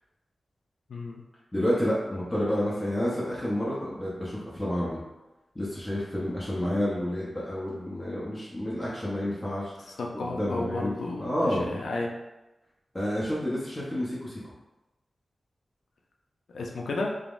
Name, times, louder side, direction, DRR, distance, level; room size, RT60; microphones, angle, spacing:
voice 1, 0.9-1.2 10.0-12.2 16.5-17.2, left 2 dB, 90° left, 0 dB, 0.4 m, -32 dB
voice 2, 1.5-5.0 5.5-11.8 12.9-14.4, equal, 20° left, -7 dB, 0.7 m, -30 dB
3.5 x 2.1 x 2.4 m, 1.0 s
wide cardioid pair, 75°, 0 cm